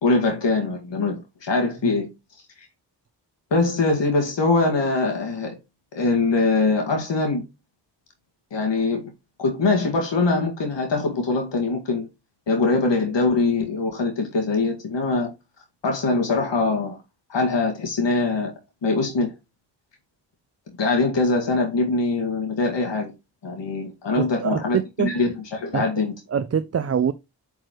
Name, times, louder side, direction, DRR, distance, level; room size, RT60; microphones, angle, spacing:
voice 1, 0.0-2.1 3.5-5.6 5.9-7.4 8.5-9.0 9.4-12.1 12.5-15.3 15.8-17.0 17.3-18.5 18.8-19.3 20.8-23.1 23.4-26.1, left 3 dB, 85° left, 2.0 m, -22 dB
voice 2, 24.2-25.1 25.7-25.8 26.3-27.1, right 7 dB, 35° right, 0.5 m, -24 dB
8.7 x 4.7 x 3.0 m
cardioid pair, 60°, 42 cm